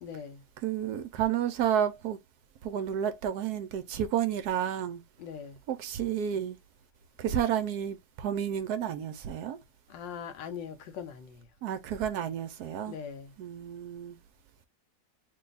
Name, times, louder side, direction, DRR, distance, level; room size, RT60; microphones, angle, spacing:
voice 1, 0.0-0.4 5.2-5.6 9.9-11.5 12.8-13.3, left 7 dB, 85° left, 1.5 m, -41 dB
voice 2, 0.6-2.2 2.6-5.0 5.7-6.6 7.2-9.6 11.6-13.0 13.4-14.2, right 9 dB, 70° right, 1.0 m, -31 dB
3.3 x 2.2 x 3.9 m
omnidirectional pair, 1.9 m